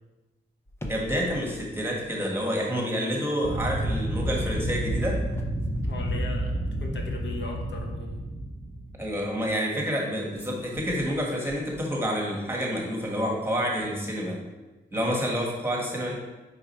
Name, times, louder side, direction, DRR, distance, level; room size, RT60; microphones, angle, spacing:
sound 1, 0.7-2.9 3.2-3.5 4.8-7.0 10.3-12.2 12.5-12.6, equal, 15° left, 0.7 m, -45 dB
voice 1, 0.9-5.2 9.0-14.4 14.9-16.2, equal, 15° right, -2 dB, 1.6 m, -28 dB
sound 2, 3.4-9.2, right 1 dB, 35° left, 1.5 m, -30 dB
voice 2, 5.8-8.2 14.9-15.0, left 2 dB, 90° left, 1 dB, 1.0 m, -38 dB
5.1 x 4.8 x 4.3 m, 1.1 s
cardioid pair, 90°, 18 cm